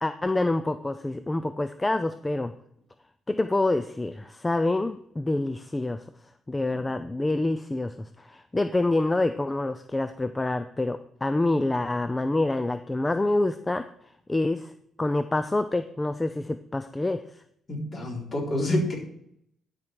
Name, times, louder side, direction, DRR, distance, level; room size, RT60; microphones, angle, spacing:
voice 1, 0.0-2.5 3.3-6.0 6.5-13.8 14.3-14.7 15.0-17.4, left 2 dB, 15° left, 10 dB, 0.4 m, -27 dB
voice 2, 17.7-19.0, left 1 dB, 40° left, -2 dB, 4.0 m, -27 dB
12.0 x 5.2 x 4.6 m, 0.71 s
cardioid pair, 90°, 0 cm